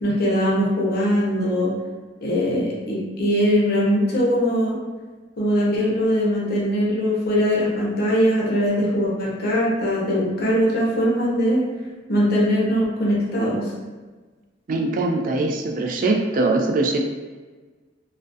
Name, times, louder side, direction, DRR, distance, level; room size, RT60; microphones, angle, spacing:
voice 1, 0.0-1.7 2.2-4.8 5.4-11.6 12.1-13.7, equal, 55° left, -5 dB, 0.6 m, -21 dB
voice 2, 14.7-17.0, right 2 dB, 50° right, 3 dB, 0.3 m, -22 dB
2.3 x 2.1 x 2.5 m, 1.3 s
head